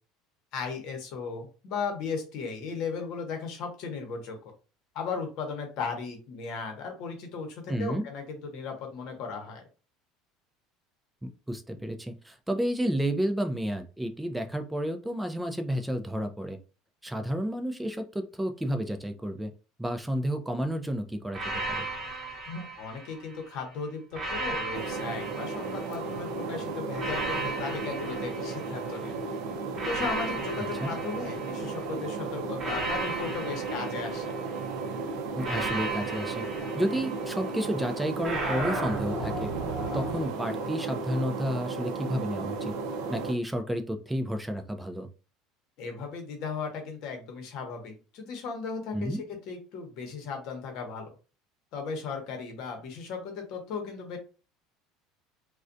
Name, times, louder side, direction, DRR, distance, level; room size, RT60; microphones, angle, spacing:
voice 1, 0.5-4.4 4.9-9.6 22.5-29.2 29.8-34.3 45.8-51.1 51.7-54.2, left 5 dB, 60° left, 4 dB, 0.8 m, -36 dB
voice 2, 7.7-8.0 11.5-16.6 17.0-19.5 19.8-21.4 21.7-21.9 30.8-31.0 35.4-36.5 36.8-39.5 39.9-42.7 43.1-45.1 48.9-49.2, equal, 5° right, 6 dB, 0.3 m, -31 dB
sound 1, 21.3-23.5 24.1-26.3 26.9-29.1 29.7-31.9 32.6-34.7 35.4-37.5 38.2-40.2, right 2 dB, 30° right, 0.9 m, -35 dB
sound 2, 24.7-43.3, right 4 dB, 70° right, 0.4 m, -34 dB
2.3 x 2.1 x 2.5 m, 0.35 s
cardioid pair, 135°, 0 cm